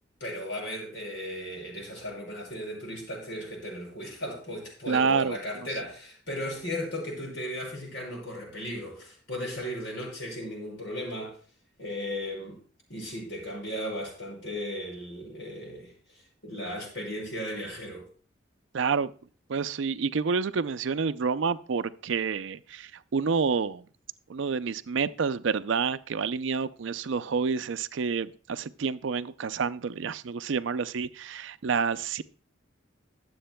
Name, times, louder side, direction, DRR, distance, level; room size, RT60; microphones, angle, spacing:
voice 1, 0.2-11.4 11.8-12.6 12.9-18.1, equal, 70° left, 6.2 m, -36 dB
voice 2, 4.9-5.4 18.7-19.1 19.5-23.8 24.3-32.2, right 5 dB, 70° right, 0.4 m, -28 dB
22.5 x 7.8 x 2.2 m
head